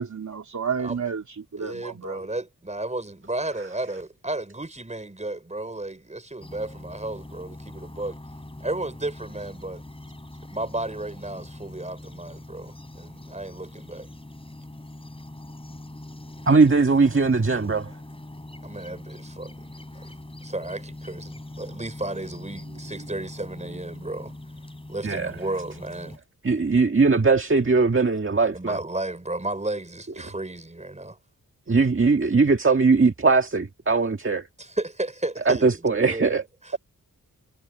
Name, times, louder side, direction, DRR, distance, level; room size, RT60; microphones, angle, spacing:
voice 1, 0.0-2.2, right 6 dB, 50° right, 2.9 m, -31 dB
voice 2, 1.6-8.2 8.6-9.8 10.5-14.1 18.6-20.1 20.4-24.3 24.9-26.2 28.5-31.2 34.6-36.4 36.6-36.7, right 2 dB, 20° right, 4.9 m, -33 dB
sound 1, 6.4-26.2, left 1 dB, 15° left, 5.3 m, -42 dB
voice 3, 16.5-17.9 25.0-25.3 26.4-28.8 31.7-34.5 35.5-36.4, right 4 dB, 35° right, 1.7 m, -20 dB
wide cardioid pair, 105°, 36 cm